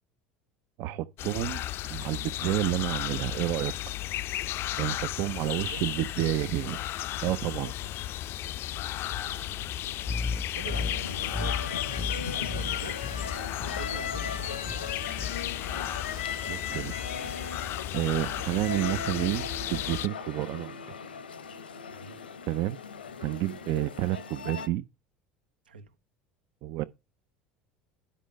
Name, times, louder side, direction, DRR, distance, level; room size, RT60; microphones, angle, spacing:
voice 1, 0.8-1.6 1.9-3.7 4.8-6.8 7.2-7.7 15.7-16.1 16.5-17.0 17.9-20.8 22.5-22.8 23.2-24.8 26.6-26.8, right 15 dB, 60° right, 0.6 m, -30 dB
sound 1, 1.2-20.1, left 14 dB, 50° left, 0.5 m, -34 dB
voice 2, 4.9-5.8 7.6-7.7 8.7-10.1 10.4-12.9 13.8-15.3 17.8-18.2 21.9-22.2 25.6-25.9, right 6 dB, 90° right, 1.1 m, -47 dB
sound 2, 10.1-16.1, left 4 dB, 5° left, 0.7 m, -36 dB
sound 3, 10.6-24.7, left 6 dB, 90° left, 1.0 m, -38 dB
10.0 x 5.3 x 5.3 m
hypercardioid pair, 75°, 5 cm